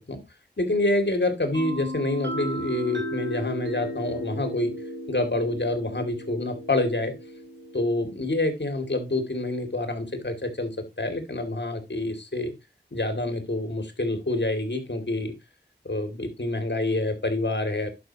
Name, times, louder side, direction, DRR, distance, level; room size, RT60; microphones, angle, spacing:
voice 1, 0.6-4.7 5.1-7.1 7.7-10.7 11.0-12.5 12.9-15.3 15.8-17.9, left 2 dB, 70° left, 6 dB, 2.6 m, -27 dB
sound 1, 1.5-9.2, equal, 80° right, 4.5 m, -36 dB
11.0 x 5.9 x 2.9 m, 0.24 s
wide cardioid pair, 55°, 18 cm